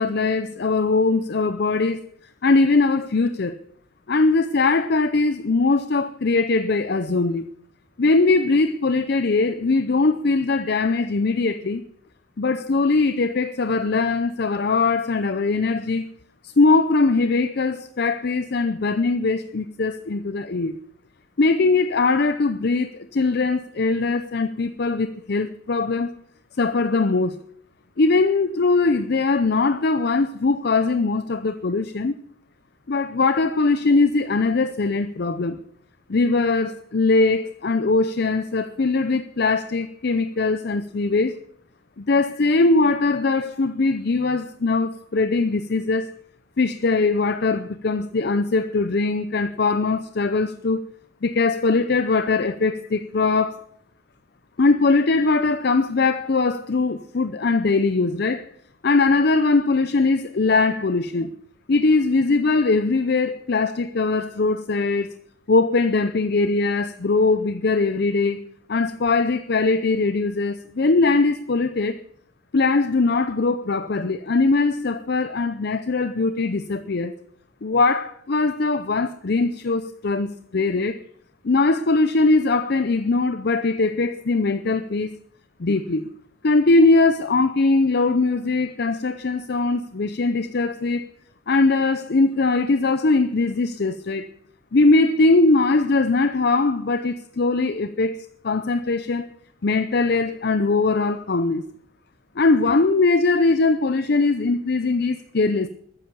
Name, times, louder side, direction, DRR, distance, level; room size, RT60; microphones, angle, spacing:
voice 1, 0.0-2.0 2.4-3.6 4.1-7.5 8.0-11.8 12.4-16.1 16.4-20.8 21.4-26.1 26.6-27.4 28.0-32.1 32.9-35.6 36.1-41.4 42.0-46.1 46.6-50.9 51.2-53.7 54.6-58.5 58.8-61.4 61.7-65.1 65.5-68.4 68.7-72.0 72.5-77.1 77.6-81.0 81.4-85.1 85.6-86.1 86.4-91.1 91.5-94.3 94.7-99.3 99.6-101.6 102.4-105.7, left 3 dB, 50° left, 0.6 m, -21 dB
13.5 x 9.9 x 6.9 m
head